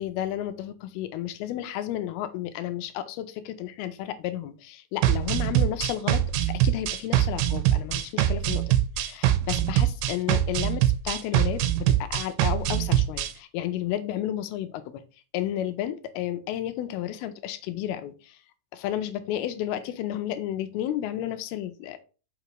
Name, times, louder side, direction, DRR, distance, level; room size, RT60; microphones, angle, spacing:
voice 1, 0.0-8.6 9.1-15.0 15.3-18.4 18.7-22.0, left 12 dB, 80° left, 10 dB, 2.5 m, -32 dB
sound 1, 5.0-13.3, right 12 dB, 90° right, 2.7 m, -23 dB
5.8 x 5.7 x 3.0 m, 0.34 s
omnidirectional pair, 4.5 m